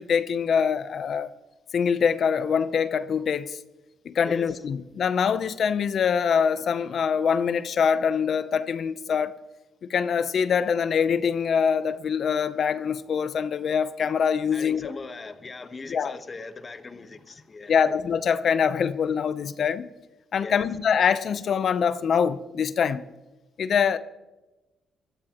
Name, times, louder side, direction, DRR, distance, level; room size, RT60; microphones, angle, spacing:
voice 1, 0.0-1.3 1.7-3.6 4.0-9.4 9.9-14.9 15.9-16.1 17.7-19.9 20.3-23.0 23.6-24.0, left 7 dB, 55° left, 0.7 m, -24 dB
voice 2, 4.3-4.6 14.5-17.9 20.4-20.6, left 3 dB, 30° left, 1.2 m, -39 dB
21.5 x 14.0 x 3.0 m
cardioid pair, 90°, 0 cm